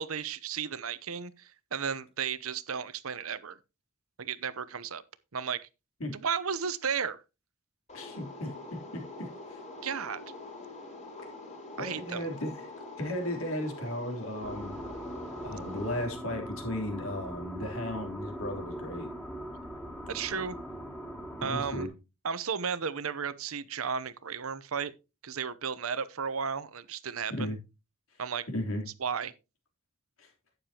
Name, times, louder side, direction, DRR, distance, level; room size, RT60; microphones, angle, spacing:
voice 1, 0.0-3.6 4.2-5.0 5.3-5.7 6.1-7.2 9.8-10.2 11.8-12.2 20.1-20.6 21.4-21.9 22.2-24.9 25.2-27.5 28.2-28.5 29.0-29.3, right 6 dB, 90° right, 0.8 m, -34 dB
voice 2, 7.9-9.6 11.8-12.7 13.0-14.8 15.4-19.1 21.4-21.9 27.3-27.6 28.5-28.8 30.2-30.3, left 1 dB, 80° left, 3.4 m, -35 dB
sound 1, 7.9-16.0, left 2 dB, 35° left, 4.3 m, -45 dB
sound 2, 14.4-21.9, equal, 10° left, 2.6 m, -41 dB
12.0 x 9.4 x 2.9 m
head